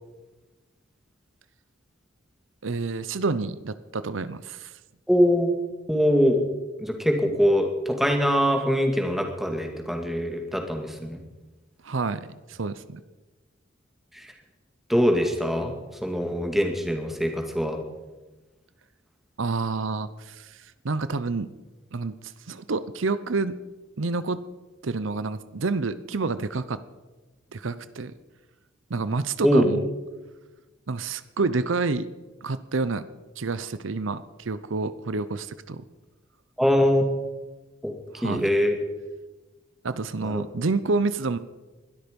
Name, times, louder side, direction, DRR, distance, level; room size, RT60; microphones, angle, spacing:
voice 1, 2.6-4.7 11.8-13.0 19.4-21.5 21.9-23.6 24.0-24.4 24.8-26.8 27.5-28.1 28.9-29.9 30.9-32.1 32.4-33.0 33.4-35.8 38.1-38.5 39.8-41.4, right 3 dB, 75° right, 14 dB, 0.7 m, -28 dB
voice 2, 5.1-5.5 5.9-6.4 6.8-11.2 14.9-15.7 16.0-17.8 29.4-29.7 36.6-37.0 37.8-37.9 38.2-38.8 40.2-40.3, equal, ahead, 3 dB, 2.0 m, -22 dB
21.0 x 12.5 x 5.3 m, 1.2 s
head